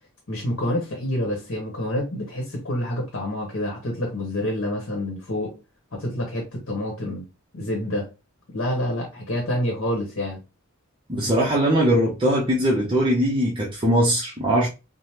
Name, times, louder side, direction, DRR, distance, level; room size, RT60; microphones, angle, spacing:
voice 1, 0.3-5.5 5.9-7.3 7.5-8.1 8.5-10.4, left 1 dB, 60° left, 0.9 m, -27 dB
voice 2, 11.1-14.7, equal, 25° right, 0.6 m, -21 dB
3.3 x 2.0 x 2.8 m
head